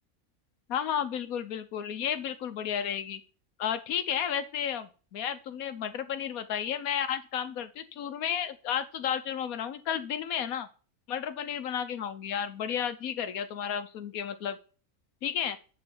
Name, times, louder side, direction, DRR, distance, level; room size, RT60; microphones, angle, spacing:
voice 1, 0.7-3.2 3.6-10.7 11.1-14.6 15.2-15.6, left 8 dB, 75° left, 11 dB, 1.3 m, -32 dB
7.9 x 4.0 x 6.9 m, 0.36 s
omnidirectional pair, 1.6 m